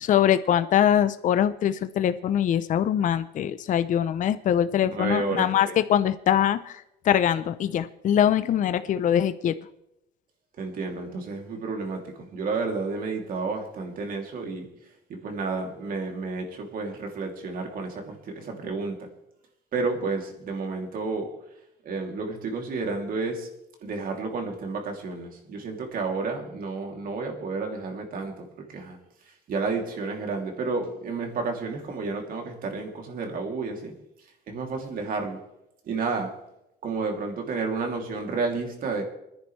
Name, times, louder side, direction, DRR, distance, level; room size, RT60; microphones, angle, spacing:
voice 1, 0.0-9.5, left 10 dB, 50° left, 12 dB, 0.6 m, -23 dB
voice 2, 4.9-5.8 10.6-14.7 15.1-19.1 19.7-21.3 21.8-23.5 23.8-29.0 29.5-33.9 34.5-35.4 35.9-36.3 36.8-39.0, right 4 dB, 55° right, 2 dB, 2.9 m, -31 dB
27.0 x 10.5 x 3.3 m, 0.85 s
cardioid pair, 110°, 17 cm